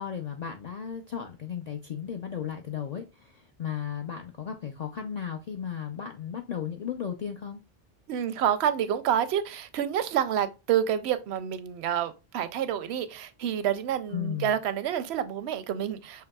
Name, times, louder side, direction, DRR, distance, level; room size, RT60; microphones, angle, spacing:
voice 1, 0.0-7.6 14.1-14.5, left 8 dB, 55° left, 0.5 m, -35 dB
voice 2, 8.1-16.3, right 9 dB, 85° right, 0.8 m, -28 dB
5.7 x 2.8 x 2.2 m
omnidirectional pair, 1.1 m